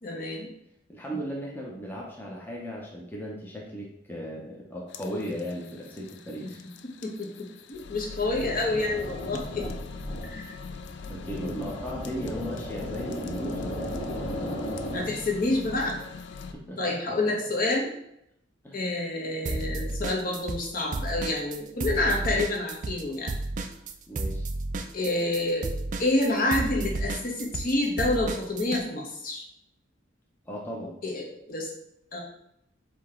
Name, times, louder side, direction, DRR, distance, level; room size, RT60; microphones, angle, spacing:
voice 1, 0.0-0.5 1.1-1.2 6.4-6.5 6.8-9.7 10.2-10.5 14.3-14.4 14.9-16.0 16.8-17.9 18.7-23.3 24.9-25.7 26.0-29.4 31.0-31.7 32.1-32.2, left 2 dB, 45° left, -1 dB, 1.0 m, -28 dB
voice 2, 0.9-6.6 11.1-13.9 16.4-16.8 18.6-18.8 24.1-24.5 30.5-31.0, equal, 10° left, -3 dB, 0.7 m, -36 dB
sound 1, 4.9-16.5, left 5 dB, 65° left, 0.4 m, -42 dB
sound 2, 8.3-15.0, equal, 30° left, 1.7 m, -36 dB
sound 3, 19.5-20.7 20.9-28.8, right 2 dB, 40° right, 0.4 m, -32 dB
5.1 x 2.9 x 3.6 m, 0.76 s
head